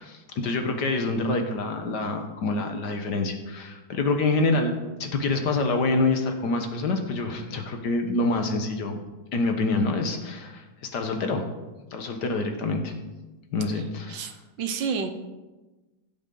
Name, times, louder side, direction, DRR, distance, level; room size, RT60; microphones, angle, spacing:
voice 1, 0.0-4.7 5.0-9.0 9.3-11.4 11.9-12.9 13.5-14.3, left 3 dB, 60° left, 5 dB, 1.6 m, -26 dB
voice 2, 14.6-15.1, right 6 dB, 70° right, 6 dB, 1.6 m, -29 dB
16.0 x 7.6 x 3.8 m, 1.1 s
omnidirectional pair, 2.1 m